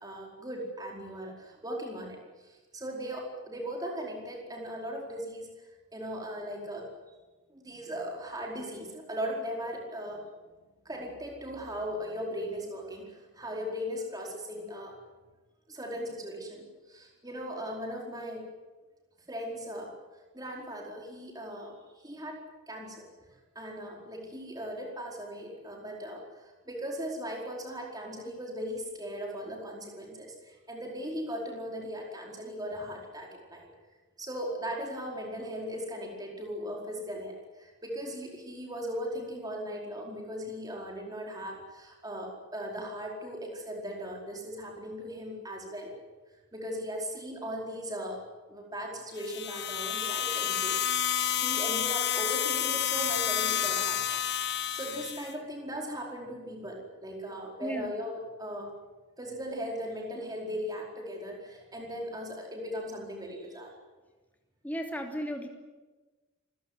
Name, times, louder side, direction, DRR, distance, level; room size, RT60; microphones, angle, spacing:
voice 1, 0.0-5.5 5.9-6.9 7.5-10.2 10.8-14.9 15.7-18.5 19.3-19.9 20.3-22.4 22.7-23.1 23.5-33.7 34.2-46.0 46.5-48.2 48.5-54.0 54.5-58.7 59.2-63.7, equal, 15° right, 0 dB, 4.8 m, -38 dB
sound 1, 49.2-55.3, left 9 dB, 50° left, 1.5 m, -30 dB
voice 2, 64.6-65.5, equal, 5° left, 2 dB, 3.0 m, -34 dB
27.5 x 16.0 x 9.7 m, 1.2 s
head